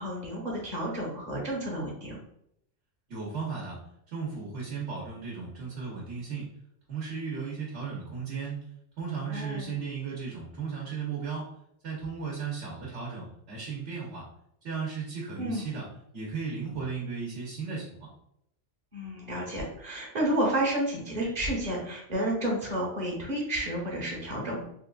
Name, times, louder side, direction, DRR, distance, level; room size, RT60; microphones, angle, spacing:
voice 1, 0.0-2.2 9.3-9.8 15.4-15.7 18.9-24.6, right 1 dB, 35° right, -2 dB, 1.0 m, -31 dB
voice 2, 3.1-3.8 4.1-6.5 6.9-8.6 9.0-11.5 11.8-14.3 14.6-15.9 16.1-17.9, right 5 dB, 70° right, -5 dB, 1.3 m, -35 dB
4.2 x 2.4 x 2.3 m, 0.74 s
omnidirectional pair, 1.3 m